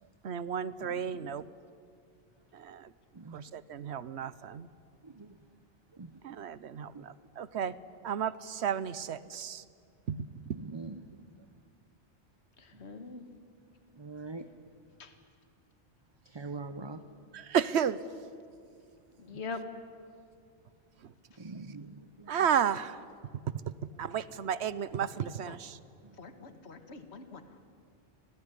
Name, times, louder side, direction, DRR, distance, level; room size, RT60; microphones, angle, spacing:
voice 1, 0.2-1.4 2.5-2.9 3.3-4.7 6.2-7.7 8.0-9.6 10.1-10.6 17.3-18.0 21.0-21.1 22.3-23.0 24.0-25.8, right 8 dB, 75° right, 17 dB, 1.1 m, -33 dB
voice 2, 5.0-5.3 6.0-6.1 6.9-7.0 10.5-11.0 14.0-14.4 16.3-17.0 21.4-22.3, right 3 dB, 25° right, 9 dB, 0.7 m, -42 dB
voice 3, 12.8-13.2 15.0-15.1 19.3-19.6 25.5-25.6 26.2-27.4, left 4 dB, 70° left, 9 dB, 1.8 m, -42 dB
25.0 x 18.0 x 9.9 m, 2.3 s
omnidirectional pair, 1.2 m